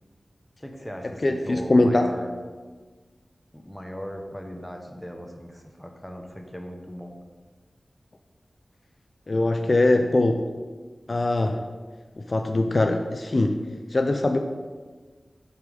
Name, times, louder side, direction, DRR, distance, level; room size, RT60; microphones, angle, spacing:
voice 1, 0.6-2.3 3.5-7.1, equal, 10° left, 3 dB, 1.0 m, -38 dB
voice 2, 1.2-2.1 9.3-10.5 11.1-11.7 12.2-13.6 13.9-14.4, left 2 dB, 50° left, 5 dB, 0.4 m, -22 dB
7.9 x 3.6 x 5.2 m, 1.4 s
wide cardioid pair, 60°, 0 cm